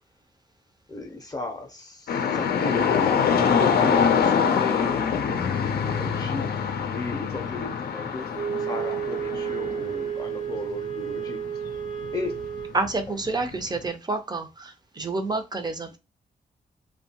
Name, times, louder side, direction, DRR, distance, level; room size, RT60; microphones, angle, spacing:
voice 1, 0.9-3.2 3.5-6.5 6.9-8.3 8.6-11.4 12.1-12.4, left 3 dB, 25° left, 0.6 m, -35 dB
sound 1, 2.1-12.9 13.2-13.8, left 6 dB, 80° left, 0.5 m, -25 dB
Wind instrument woodwind instrument, 8.3-12.8, right 8 dB, 60° right, 0.7 m, -31 dB
voice 2, 12.7-16.0, right 3 dB, 25° right, 0.5 m, -29 dB
2.7 x 2.2 x 2.8 m
wide cardioid pair, 115°, 16 cm